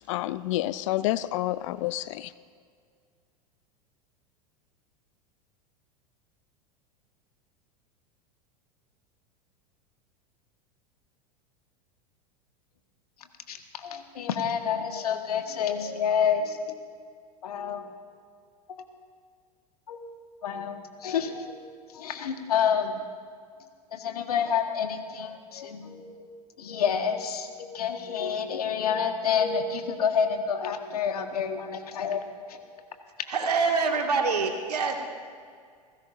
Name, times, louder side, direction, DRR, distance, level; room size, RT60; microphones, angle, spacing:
voice 1, 0.1-2.3, left 15 dB, 50° left, 16 dB, 0.5 m, -29 dB
voice 2, 13.5-16.8 17.4-17.8 19.9-20.1 20.4-21.7 21.9-23.0 23.9-26.3 26.6-32.2 32.5-32.6, left 7 dB, 70° left, 6 dB, 1.6 m, -28 dB
voice 3, 33.3-34.9, right 4 dB, 75° right, 3 dB, 2.1 m, -25 dB
30.0 x 16.0 x 2.6 m, 2.1 s
figure-of-eight pair, 85°, 20 cm